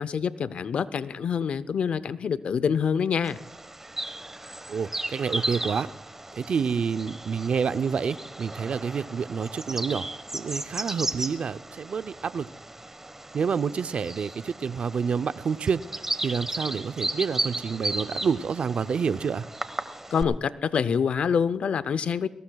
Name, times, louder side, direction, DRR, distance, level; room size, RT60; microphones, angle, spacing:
voice 1, 0.0-3.4 20.1-22.3, left 7 dB, 70° left, 15 dB, 0.6 m, -26 dB
Bird vocalization bird call bird song, 3.2-20.2, right 1 dB, 20° right, 1.3 m, -35 dB
voice 2, 4.7-5.9 6.3-10.1 10.3-12.5 13.3-19.5, right 6 dB, 65° right, 13 dB, 0.5 m, -28 dB
22.0 x 17.5 x 2.3 m, 0.92 s
cardioid pair, 55°, 2 cm